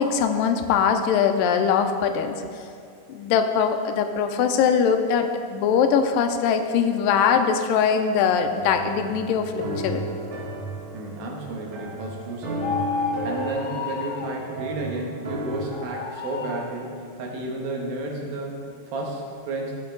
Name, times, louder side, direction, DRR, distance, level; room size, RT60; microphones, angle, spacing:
voice 1, 0.0-2.4 3.1-10.0, left 7 dB, 85° left, 7 dB, 2.2 m, -22 dB
sound 1, 8.4-15.8, right 1 dB, 55° right, 1.4 m, -34 dB
voice 2, 10.9-12.8 13.2-19.7, right 2 dB, 85° right, -1 dB, 3.1 m, -32 dB
sound 2, 12.5-14.4 15.7-16.7, left 4 dB, 65° left, 1.9 m, -31 dB
15.0 x 5.2 x 3.8 m, 2.4 s
omnidirectional pair, 4.1 m